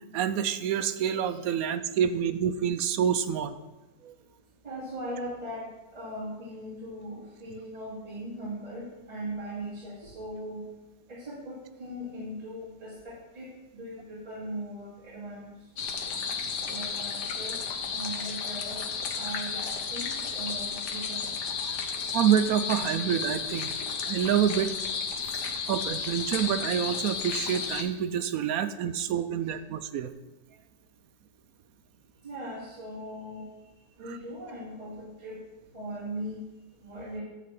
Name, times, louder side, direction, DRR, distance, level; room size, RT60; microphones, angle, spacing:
voice 1, 0.1-3.5 4.0-4.1 21.6-21.8 22.1-23.7 24.0-24.7 25.7-30.1, right 9 dB, 70° right, 11 dB, 0.9 m, -27 dB
voice 2, 4.6-10.7 11.1-15.7 16.5-18.9 19.1-22.1 25.2-25.4 28.9-29.0 32.2-33.5 34.0-35.5 35.7-36.5 36.8-37.2, right 1 dB, 25° right, -11 dB, 2.5 m, -39 dB
sound 1, 15.8-27.8, left 6 dB, 85° left, 1.5 m, -33 dB
9.7 x 4.2 x 7.5 m, 1.1 s
omnidirectional pair, 1.7 m